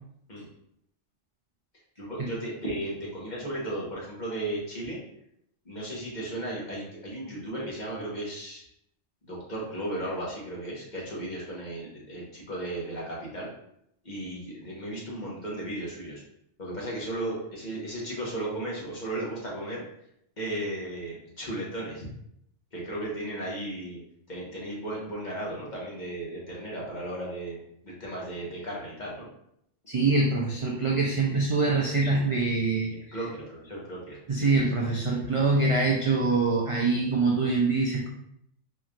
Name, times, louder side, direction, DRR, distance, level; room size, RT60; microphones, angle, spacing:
voice 1, 2.0-5.0 5.6-8.7 9.2-13.5 14.0-16.2 16.6-19.8 20.4-22.1 22.7-24.0 24.3-29.3 31.9-32.3 32.9-34.6, right 1 dB, 40° left, -4 dB, 1.1 m, -35 dB
voice 2, 29.9-32.9 34.3-38.1, right 3 dB, 60° right, -2 dB, 0.3 m, -24 dB
4.1 x 3.1 x 2.4 m, 0.74 s
omnidirectional pair, 1.2 m